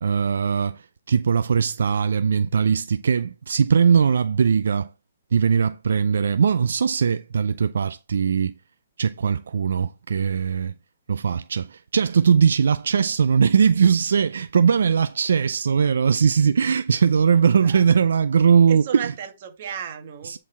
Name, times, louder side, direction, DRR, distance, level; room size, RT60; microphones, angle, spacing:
voice 1, 0.0-4.9 5.3-8.5 9.0-10.7 11.1-18.8 20.3-20.4, right 6 dB, 75° right, 0.4 m, -20 dB
voice 2, 17.4-17.8 18.4-20.4, right 9 dB, 45° right, 1.4 m, -35 dB
9.7 x 4.0 x 4.2 m
hypercardioid pair, 160°, 0 cm